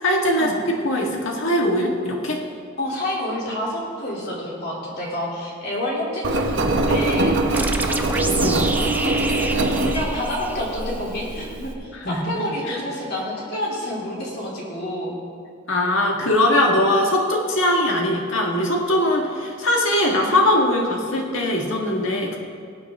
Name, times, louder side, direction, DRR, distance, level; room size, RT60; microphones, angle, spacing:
voice 1, 0.0-2.4 8.2-8.6 11.9-12.4 12.7-12.8 15.7-22.4, left 1 dB, 70° left, 0 dB, 1.8 m, -21 dB
voice 2, 2.8-7.4 9.8-15.2, left 1 dB, 50° left, -4 dB, 3.3 m, -28 dB
Engine, 6.2-11.7, right 2 dB, 65° right, 1.0 m, -23 dB
sound 1, 7.5-11.0, right 2 dB, 10° right, 0.6 m, -28 dB
19.5 x 8.7 x 3.7 m, 2.2 s
head